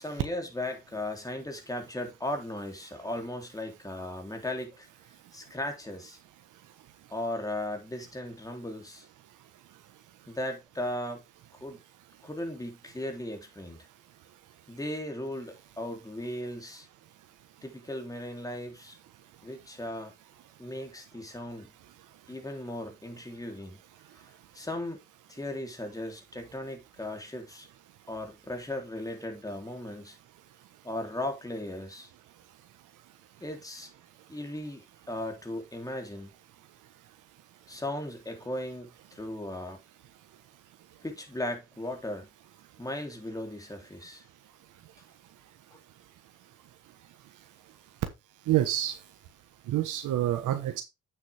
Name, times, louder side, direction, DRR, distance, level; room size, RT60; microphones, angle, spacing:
voice 1, 0.0-4.9 5.3-6.2 7.1-9.1 10.3-11.2 11.6-11.8 12.2-13.8 14.7-16.9 17.6-19.0 19.4-20.1 20.6-21.7 22.3-23.8 24.5-25.0 25.3-27.7 28.1-30.2 30.8-32.1 33.4-33.9 34.3-36.3 37.7-39.8 41.0-42.3 42.8-44.2 45.7-45.8, left 1 dB, 10° left, 3.5 m, -37 dB
voice 2, 48.5-49.0 49.7-50.8, right 13 dB, 85° right, 1.4 m, -27 dB
8.6 x 7.4 x 3.5 m
cardioid pair, 90°, 30 cm